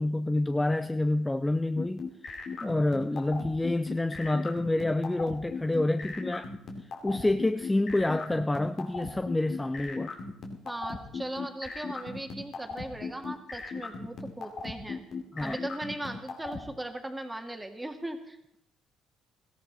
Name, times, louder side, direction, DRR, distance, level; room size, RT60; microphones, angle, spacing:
voice 1, 0.0-2.0 2.6-6.5 7.0-10.1 15.3-15.6, left 2 dB, 15° left, 0.5 m, -28 dB
sound 1, 1.8-16.6, left 4 dB, 60° left, 2.6 m, -37 dB
voice 2, 10.6-15.0 15.4-18.4, right 1 dB, 10° right, 2.1 m, -38 dB
16.5 x 14.5 x 4.1 m
hypercardioid pair, 55°, 0 cm